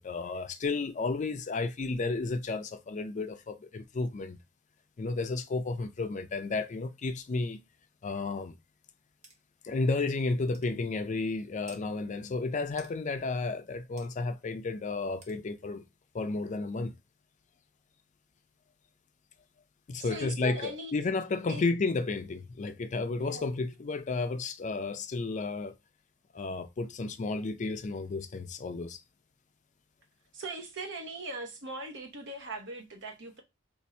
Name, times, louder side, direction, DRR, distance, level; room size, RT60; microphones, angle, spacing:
voice 1, 0.0-4.4 5.0-7.6 8.0-8.5 9.6-15.8 16.1-17.0 19.9-25.7 26.3-29.0, left 3 dB, 40° left, 0.4 m, -32 dB
sound 1, 9.2-9.4 9.9-10.0 10.5-10.7 11.7-11.8 12.8-12.9 14.0-14.1 15.2-15.4, right 2 dB, 35° right, 0.9 m, -52 dB
voice 2, 20.0-20.9 21.5-21.6 23.2-23.5 30.3-33.4, right 2 dB, 65° right, 0.9 m, -40 dB
2.6 x 2.6 x 4.2 m
head